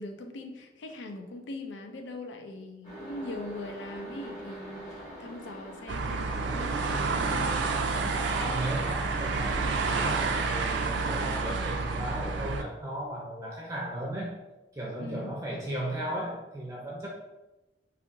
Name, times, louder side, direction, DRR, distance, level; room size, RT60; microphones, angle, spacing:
voice 1, 0.0-4.8 5.2-7.6 8.0-8.6 15.0-15.3, left 2 dB, 90° left, 5 dB, 0.4 m, -41 dB
sound 1, 2.8-8.7, right 1 dB, 45° left, 1.1 m, -44 dB
sound 2, 5.9-12.6, right 4 dB, 75° right, 0.4 m, -29 dB
voice 2, 8.3-14.3 14.7-17.1, right 1 dB, 15° right, -3 dB, 0.5 m, -36 dB
4.0 x 2.7 x 2.5 m, 1.0 s
head